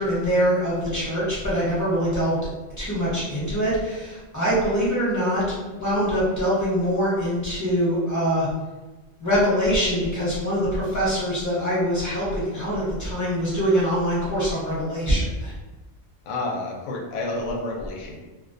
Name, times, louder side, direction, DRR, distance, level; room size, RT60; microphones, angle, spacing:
voice 1, 0.0-2.4 2.8-8.5 9.2-15.5, equal, 15° left, -9 dB, 0.9 m, -24 dB
voice 2, 16.2-18.2, left 2 dB, 80° left, 0 dB, 0.9 m, -29 dB
2.4 x 2.2 x 2.5 m, 1.2 s
omnidirectional pair, 1.3 m